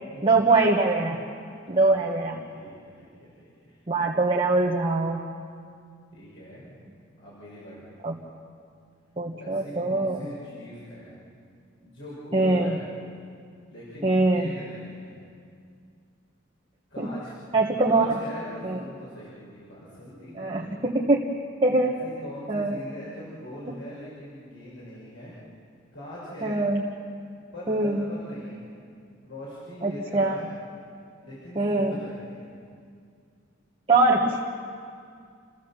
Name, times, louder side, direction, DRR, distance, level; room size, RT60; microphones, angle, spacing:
voice 1, 0.2-1.2 1.7-2.4 3.9-5.3 8.0-8.2 9.2-10.2 12.3-12.8 14.0-14.5 17.0-17.1 17.5-18.2 18.6-18.8 20.4-21.3 21.6-21.9 22.5-22.7 26.4-26.8 27.7-28.1 29.8-30.3 31.5-31.9 33.9-34.4, right 2 dB, 30° right, -2 dB, 1.5 m, -23 dB
voice 2, 1.7-2.1 2.5-3.8 6.1-6.8 7.2-7.9 9.4-11.2 11.8-12.9 13.7-15.1 16.9-17.3 17.8-20.9 21.8-25.3 25.9-26.6 27.5-28.7 29.2-30.5 31.2-32.5, left 1 dB, 70° left, -8 dB, 6.1 m, -42 dB
29.5 x 16.0 x 7.4 m, 2.3 s
head